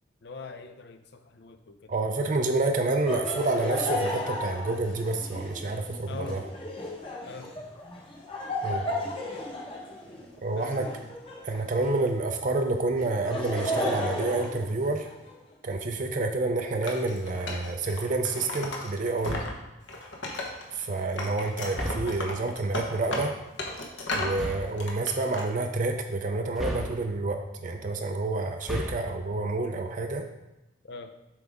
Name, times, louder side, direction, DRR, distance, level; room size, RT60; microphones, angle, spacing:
voice 1, 0.2-1.9 6.1-6.4 7.2-7.5 10.5-11.1 12.0-12.1 30.8-31.1, left 3 dB, 60° left, 6 dB, 0.6 m, -42 dB
voice 2, 1.9-6.4 8.6-8.9 10.4-10.9 11.4-15.1 15.6-19.4 20.7-23.3 24.1-30.2, right 2 dB, 40° right, 4 dB, 0.5 m, -28 dB
Laughter, 3.0-12.1 13.0-15.3, left 1 dB, 30° left, 0.9 m, -34 dB
Wood, 16.8-19.5 19.8-20.8 21.2-24.4 24.8-25.4, left 2 dB, 75° left, 1.1 m, -35 dB
sound 1, 19.2-19.7 21.7-22.3 24.3-24.8 26.5-27.3 28.5-29.2, equal, ahead, 0.8 m, -35 dB
7.8 x 4.9 x 3.6 m, 0.96 s
head